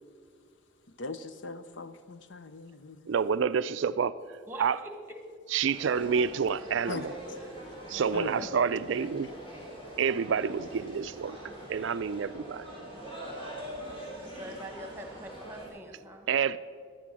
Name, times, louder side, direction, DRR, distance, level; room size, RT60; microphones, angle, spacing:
voice 1, 1.0-3.1 6.9-7.0 8.1-8.5, left 3 dB, 60° left, 0.7 m, -39 dB
voice 2, 3.1-4.2 4.6-4.8 5.5-7.1 7.9-9.3 10.0-11.4 11.7-12.6 16.3-16.6, right 6 dB, 65° right, 0.4 m, -28 dB
sound 1, 5.7-15.7, right 1 dB, 30° left, 4.6 m, -43 dB
voice 3, 6.7-7.1 14.2-16.3, right 1 dB, 10° right, 1.4 m, -44 dB
17.0 x 11.0 x 6.2 m
head